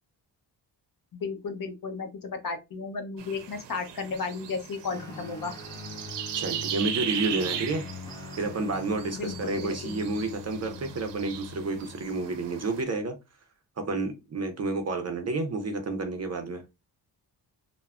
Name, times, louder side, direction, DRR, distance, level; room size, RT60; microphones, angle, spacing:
voice 1, 1.1-5.5 9.2-9.9, left 4 dB, 50° left, 0.7 m, -34 dB
sound 1, 3.2-12.8, right 9 dB, 80° right, 0.6 m, -38 dB
Guitar, 4.9-12.6, left 4 dB, 10° left, 0.7 m, -43 dB
voice 2, 6.3-7.8 8.4-13.1 13.8-16.6, right 3 dB, 40° right, 0.5 m, -30 dB
3.3 x 2.0 x 2.3 m
wide cardioid pair, 110°, 42 cm